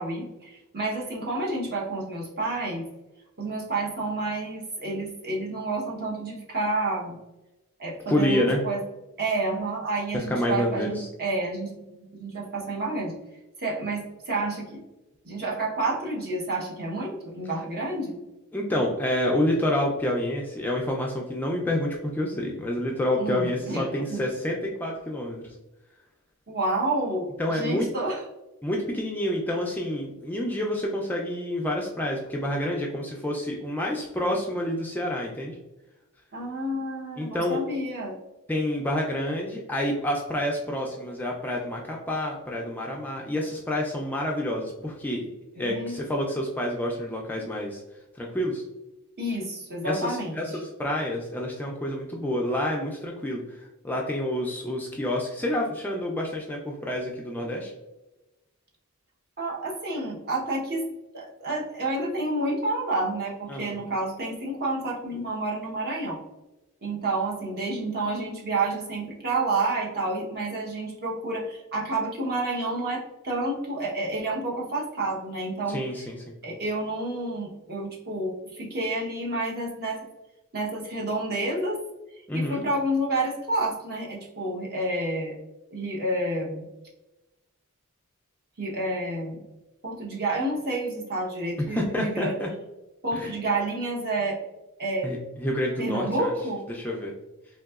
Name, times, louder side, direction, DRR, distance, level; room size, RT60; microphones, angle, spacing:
voice 1, 0.0-2.9 3.4-7.2 7.8-8.8 9.2-13.1 13.6-14.8 15.2-18.2 23.2-24.2 26.5-28.2 36.3-38.2 45.6-46.0 49.2-50.6 59.4-60.9 61.1-66.2 66.8-75.8 76.4-80.1 80.5-81.8 82.3-85.3 85.7-86.6 88.6-89.4 89.8-92.4 93.0-94.4 94.8-95.1 95.8-96.6, right 2 dB, 45° right, -3 dB, 0.8 m, -29 dB
voice 2, 8.1-8.6 10.3-11.1 18.5-25.4 27.4-27.9 28.6-35.6 37.2-37.6 38.5-45.3 45.6-47.8 48.2-48.6 49.8-57.7 63.5-63.8 75.7-76.2 82.3-82.6 91.7-92.5 93.2-93.3 95.0-96.3 96.7-97.1, left 1 dB, 10° left, -1 dB, 0.3 m, -28 dB
3.8 x 2.7 x 2.3 m, 1.0 s
head